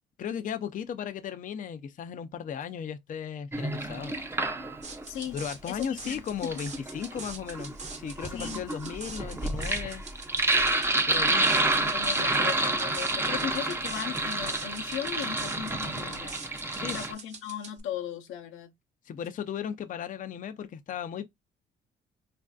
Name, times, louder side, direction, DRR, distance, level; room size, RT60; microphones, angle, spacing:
voice 1, 0.2-4.2 5.3-10.0 11.1-11.5 16.7-17.0 19.1-21.3, left 8 dB, 40° left, 0.4 m, -36 dB
Sink (filling or washing), 3.5-5.0 6.2-17.1, right 2 dB, 10° right, 0.6 m, -29 dB
sound 1, 4.8-17.8, right 4 dB, 35° right, 0.9 m, -44 dB
voice 2, 5.7-6.5 8.3-8.6 9.6-9.7 11.3-16.4 16.9-18.7, left 9 dB, 85° left, 0.7 m, -37 dB
3.2 x 2.5 x 2.3 m
cardioid pair, 90°, 20 cm